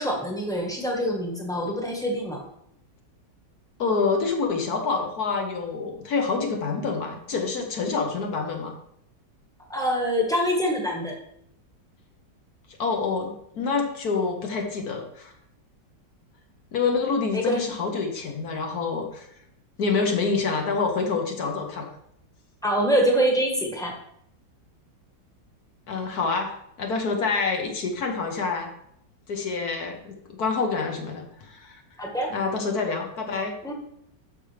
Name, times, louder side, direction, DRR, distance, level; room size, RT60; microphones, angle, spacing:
voice 1, 0.0-2.4 9.7-11.2 17.3-17.6 22.6-24.0 32.0-32.3 33.6-33.7, equal, ahead, 0 dB, 1.3 m, -25 dB
voice 2, 3.8-8.7 12.8-15.3 16.7-19.3 19.8-21.9 25.9-26.5 26.8-28.7 29.3-31.8 32.3-33.6, left 4 dB, 60° left, 3 dB, 1.6 m, -27 dB
12.0 x 5.3 x 3.4 m, 0.72 s
omnidirectional pair, 2.0 m